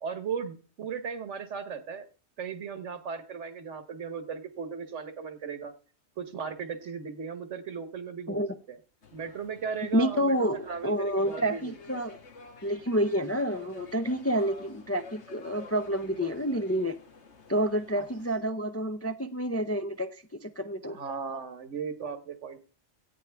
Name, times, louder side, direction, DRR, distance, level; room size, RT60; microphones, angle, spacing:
voice 1, 0.0-2.1 2.4-5.7 6.2-8.4 8.7-8.8 9.1-12.0 18.0-18.1 20.9-22.6, right 6 dB, 85° right, 10 dB, 1.5 m, -37 dB
sound 1, 9.0-18.4, left 3 dB, 70° left, 1.7 m, -51 dB
voice 2, 9.9-12.2 12.6-16.9 17.5-21.0, equal, 25° left, 8 dB, 0.3 m, -29 dB
17.0 x 10.5 x 3.4 m, 0.41 s
omnidirectional pair, 1.2 m